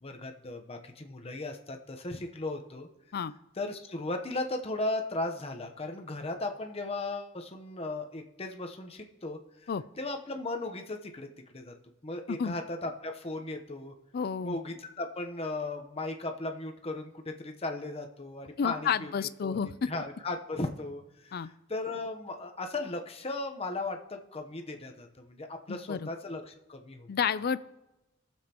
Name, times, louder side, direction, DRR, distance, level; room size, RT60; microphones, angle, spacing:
voice 1, 0.0-2.9 3.6-9.7 10.0-11.7 12.0-13.9 14.4-19.1 19.4-19.6 19.9-27.1, left 2 dB, 30° left, 4 dB, 0.9 m, -36 dB
voice 2, 14.1-14.6 18.6-19.9 21.3-21.5 25.7-26.1 27.1-27.6, left 7 dB, 55° left, 16 dB, 0.4 m, -30 dB
20.5 x 7.3 x 2.9 m, 0.97 s
head